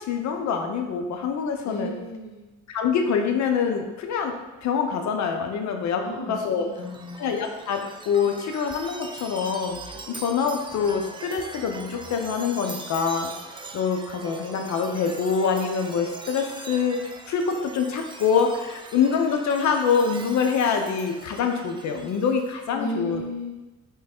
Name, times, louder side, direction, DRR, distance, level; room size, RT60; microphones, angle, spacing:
voice 1, 0.0-1.9 2.7-4.3 4.6-6.0 6.3-6.7 7.2-9.8 10.1-13.3 13.7-23.2, left 6 dB, 65° left, 4 dB, 0.6 m, -25 dB
voice 2, 1.6-2.4 6.0-7.2 22.7-23.5, left 1 dB, 85° left, -1 dB, 1.1 m, -34 dB
Chime, 6.7-22.5, right 3 dB, 15° right, 0.4 m, -42 dB
3.7 x 3.1 x 4.3 m, 1.1 s
cardioid pair, 90°, 30 cm